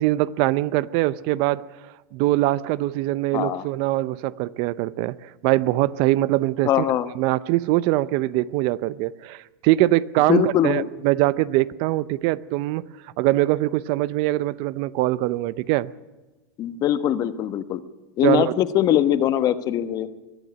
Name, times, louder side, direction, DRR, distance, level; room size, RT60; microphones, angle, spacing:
voice 1, 0.0-1.7 2.1-6.8 7.1-12.8 13.2-15.9 18.2-18.5, right 17 dB, 50° right, 0.6 m, -22 dB
voice 2, 3.3-3.7 6.6-7.1 10.3-10.9 16.6-17.8 18.2-20.1, left 11 dB, 35° left, 1.2 m, -21 dB
22.0 x 12.5 x 9.6 m
supercardioid pair, 135°, 11 cm